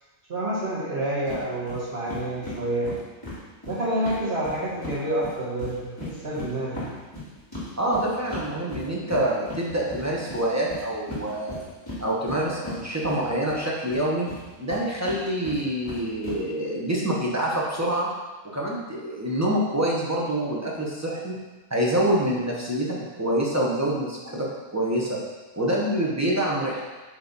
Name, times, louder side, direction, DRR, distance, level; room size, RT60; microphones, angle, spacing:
voice 1, 0.3-2.9 3.7-6.9, right 1 dB, 50° right, -7 dB, 1.5 m, -28 dB
sound 1, 1.3-1.4 1.7-1.8 2.1-5.0 5.2-13.6 13.9-16.4, left 2 dB, 15° left, 2.1 m, -37 dB
voice 2, 7.8-11.6 12.0-14.3 14.6-18.1 18.5-21.4 21.7-25.2 25.6-26.8, right 1 dB, 15° right, -4 dB, 0.9 m, -26 dB
8.3 x 3.2 x 4.1 m, 1.2 s
omnidirectional pair, 1.4 m